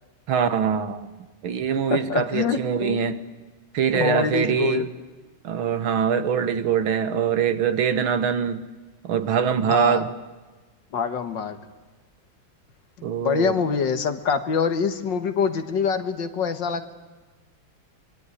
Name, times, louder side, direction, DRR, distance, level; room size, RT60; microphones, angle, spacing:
voice 1, 0.3-1.1 1.4-3.2 3.7-4.9 5.4-8.6 9.0-10.1 13.0-13.6, right 7 dB, 80° right, 2.2 m, -23 dB
voice 2, 1.9-3.0 3.9-4.9 9.7-10.1 10.9-11.6 13.0-16.9, left 6 dB, 60° left, 2.1 m, -25 dB
25.0 x 22.5 x 9.9 m
omnidirectional pair, 2.2 m